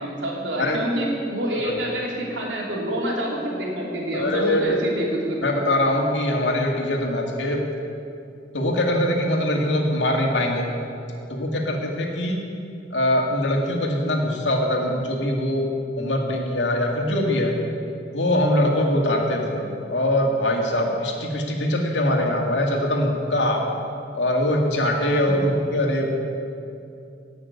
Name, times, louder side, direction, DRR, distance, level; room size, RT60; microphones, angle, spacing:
voice 1, 0.0-5.4, equal, 90° right, -2 dB, 3.2 m, -27 dB
voice 2, 4.1-4.8 5.4-7.6 8.5-10.7 11.3-12.4 12.9-15.7 16.0-17.5 18.1-23.6 24.1-26.2, left 1 dB, 80° left, 1 dB, 2.2 m, -22 dB
17.5 x 6.5 x 8.3 m, 2.6 s
head